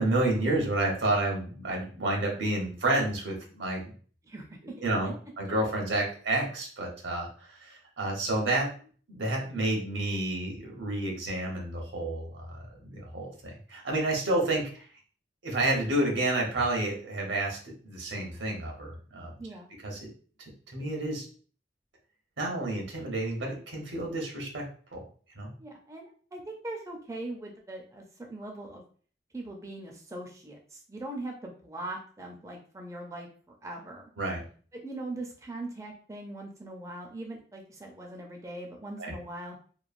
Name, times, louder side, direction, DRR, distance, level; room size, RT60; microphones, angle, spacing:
voice 1, 0.0-3.9 4.8-8.7 9.1-14.8 15.4-19.3 19.8-20.0 20.7-21.3 22.4-24.6 24.9-25.0 25.3-25.5 34.2-34.4 39.0-39.1, right 2 dB, 90° right, -1 dB, 1.0 m, -30 dB
voice 2, 4.2-4.7 19.4-19.7 25.6-28.8 29.3-34.0 34.7-39.6, right 2 dB, 15° right, 0 dB, 0.4 m, -41 dB
3.0 x 2.2 x 2.4 m, 0.43 s
head